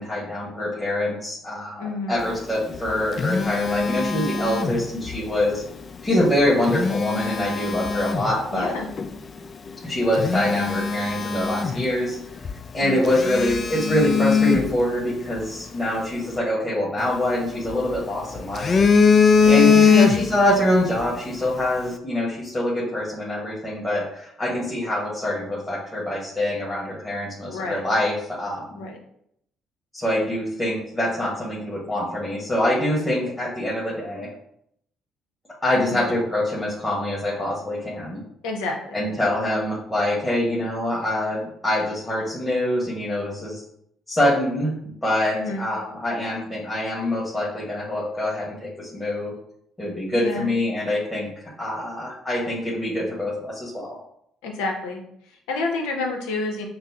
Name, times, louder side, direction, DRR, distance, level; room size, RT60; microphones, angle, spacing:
voice 1, 0.0-5.6 6.0-8.7 9.8-12.2 12.7-18.8 19.4-28.8 29.9-34.3 35.6-38.2 38.9-43.6 44.1-49.3 49.8-54.0, left 1 dB, 15° left, -7 dB, 1.4 m, -25 dB
voice 2, 1.8-2.2 8.5-8.9 12.8-13.0 19.6-20.2 27.4-27.8 28.8-29.0 35.7-36.1 38.4-39.0 45.3-45.6 50.1-50.5 54.4-56.7, left 3 dB, 85° left, 2 dB, 0.7 m, -29 dB
Telephone, 2.6-5.2 6.5-8.4 9.0-9.1 9.7-9.8 10.1-12.2 12.5-12.6 13.1-15.5 17.0-18.0 18.4-20.5 20.8-21.0, left 6 dB, 45° left, 0.3 m, -21 dB
6.0 x 2.0 x 2.8 m, 0.71 s
supercardioid pair, 70°, 0 cm